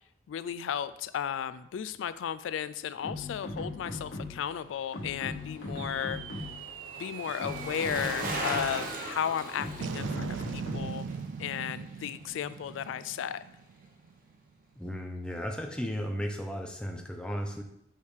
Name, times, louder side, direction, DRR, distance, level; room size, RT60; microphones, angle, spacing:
voice 1, 0.3-6.5 7.0-11.0 11.4-13.4, left 9 dB, 90° left, 14 dB, 0.3 m, -34 dB
sound 1, 3.0-4.6 4.9-6.7 7.3-8.9 9.6-11.1, left 1 dB, 70° left, 1.3 m, -39 dB
Bicycle, 4.4-12.8 13.1-13.2, right 1 dB, 45° right, 0.9 m, -40 dB
sound 2, 5.8-14.4, right 6 dB, 80° right, 0.3 m, -41 dB
voice 2, 14.8-17.6, equal, 5° left, 3 dB, 0.6 m, -35 dB
6.3 x 5.6 x 3.3 m, 0.81 s
head